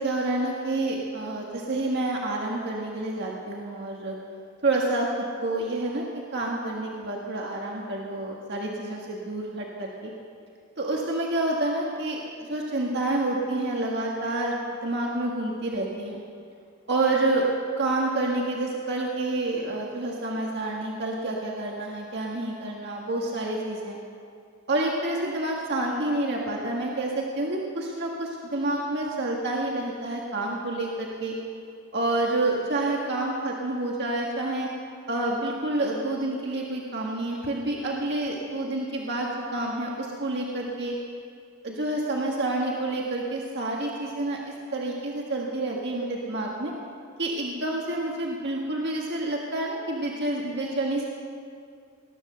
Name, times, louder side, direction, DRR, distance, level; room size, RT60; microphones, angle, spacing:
voice 1, 0.0-4.1 4.6-6.1 6.3-10.1 10.8-14.6 14.8-16.2 16.9-17.4 17.8-24.0 24.7-31.4 31.9-34.7 35.1-40.9 41.6-44.4 44.7-46.7 47.2-51.0, right 2 dB, 55° right, -2 dB, 1.7 m, -28 dB
19.5 x 10.0 x 6.8 m, 2.3 s
head